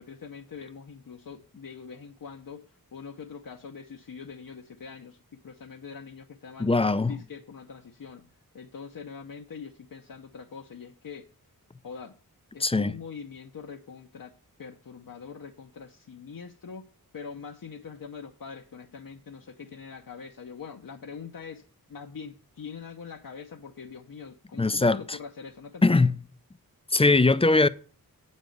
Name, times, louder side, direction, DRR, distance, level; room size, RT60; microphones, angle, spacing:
voice 1, 0.0-6.7 7.0-11.3 11.8-12.2 12.5-16.9 17.1-21.6 21.9-26.0, left 6 dB, 60° left, 0.8 m, -43 dB
voice 2, 6.6-7.1 12.6-12.9 24.6-25.2 25.8-26.1 26.9-27.7, left 3 dB, 15° left, 0.4 m, -21 dB
8.2 x 5.4 x 7.7 m
wide cardioid pair, 85°, 37 cm